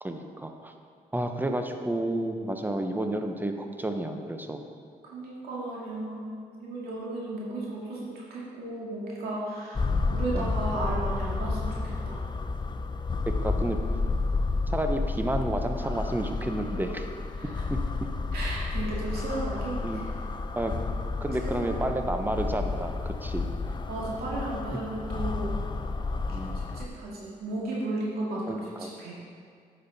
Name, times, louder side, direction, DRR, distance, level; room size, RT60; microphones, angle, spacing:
voice 1, 0.0-0.7 1.1-4.6 10.3-10.5 13.3-13.8 14.7-17.0 17.7-17.8 19.8-20.1 20.6-20.7 21.2-23.5 26.3-26.6 28.5-28.9, right 1 dB, 10° right, 5 dB, 0.8 m, -31 dB
voice 2, 5.0-12.2 17.4-17.6 18.3-20.1 21.4-21.8 23.9-25.6 26.3-29.2, right 2 dB, 85° right, -5 dB, 2.1 m, -35 dB
sound 1, 9.7-26.9, left 3 dB, 30° left, 0.5 m, -31 dB
10.0 x 5.5 x 4.0 m, 2.2 s
cardioid pair, 65°, 16 cm